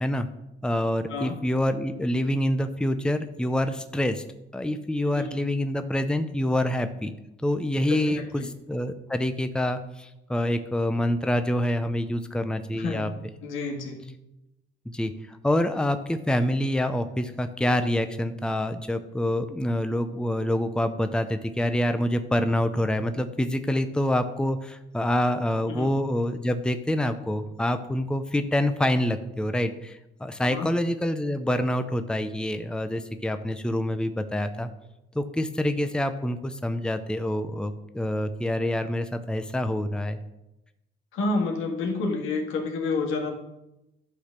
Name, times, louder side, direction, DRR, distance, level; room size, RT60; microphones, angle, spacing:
voice 1, 0.6-4.2 4.5-7.1 7.4-13.1 14.9-34.7 35.1-40.2, left 1 dB, 5° left, 9 dB, 0.7 m, -26 dB
voice 2, 7.9-8.5 12.7-13.1 13.4-14.0 25.7-25.9 30.5-30.7 41.1-43.3, left 3 dB, 90° left, 1 dB, 2.0 m, -29 dB
12.0 x 4.1 x 6.6 m, 0.91 s
cardioid pair, 90°, 20 cm